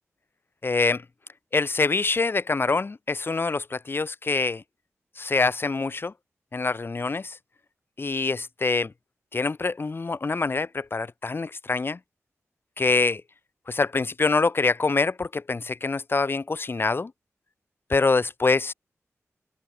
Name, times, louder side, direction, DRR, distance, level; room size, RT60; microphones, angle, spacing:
voice 1, 0.6-1.0 1.5-4.6 5.2-6.1 6.5-7.4 8.0-8.9 9.3-12.0 12.8-13.2 13.7-17.1 17.9-18.7, left 3 dB, 45° left, 7.9 m, -25 dB
wide cardioid pair, 95°, 5 cm